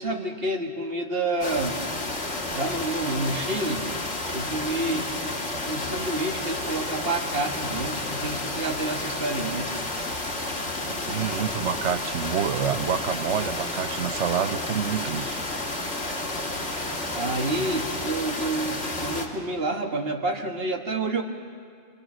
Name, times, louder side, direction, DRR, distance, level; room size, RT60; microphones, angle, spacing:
voice 1, 0.0-1.8 2.5-3.9 4.3-5.1 5.7-9.7 17.1-21.2, right 2 dB, 60° right, 3 dB, 1.9 m, -29 dB
sound 1, 1.4-19.3, left 2 dB, 85° left, 2.5 m, -31 dB
voice 2, 10.8-15.4, right 8 dB, 85° right, 11 dB, 1.2 m, -28 dB
25.5 x 24.0 x 6.3 m, 2.1 s
omnidirectional pair, 1.2 m